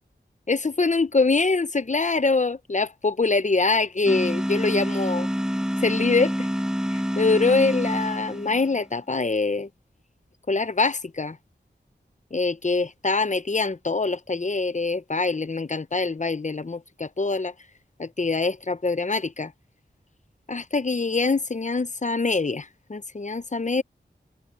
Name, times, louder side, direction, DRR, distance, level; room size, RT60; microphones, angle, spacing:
voice 1, 0.5-5.3 5.8-6.5 6.9-9.7 10.5-11.4 12.3-17.5 18.0-19.5 20.5-23.8, left 3 dB, 40° left, 0.8 m, -24 dB
sound 1, 4.1-8.8, equal, 5° right, 1.7 m, -27 dB
wide cardioid pair, 45°, 19 cm